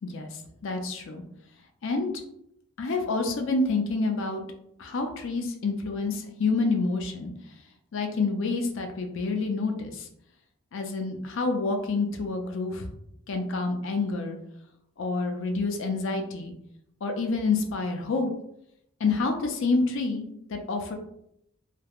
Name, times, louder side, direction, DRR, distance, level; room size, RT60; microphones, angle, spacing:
voice 1, 0.6-1.2 1.8-2.1 2.8-4.4 4.8-7.3 7.9-10.1 10.7-12.9 13.3-14.4 15.0-16.5 17.0-18.3 19.0-20.2 20.5-20.9, left 3 dB, 60° left, 4 dB, 0.4 m, -28 dB
3.2 x 2.1 x 2.3 m, 0.77 s
head